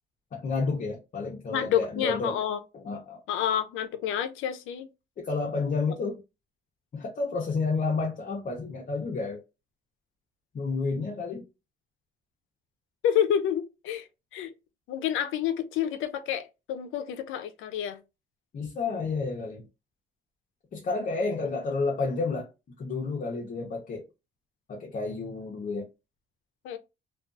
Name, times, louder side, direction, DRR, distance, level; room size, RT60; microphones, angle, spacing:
voice 1, 0.3-2.4 2.8-3.2 5.2-6.2 6.9-9.4 10.5-11.5 18.5-19.7 20.7-22.5 22.8-24.1 24.7-25.9, left 4 dB, 45° left, 0.7 m, -30 dB
voice 2, 1.5-2.6 3.3-4.9 13.0-14.1 14.3-14.5 14.9-18.0 26.6-26.8, left 10 dB, 85° left, 0.4 m, -28 dB
2.4 x 2.3 x 2.4 m
cardioid pair, 90°, 20 cm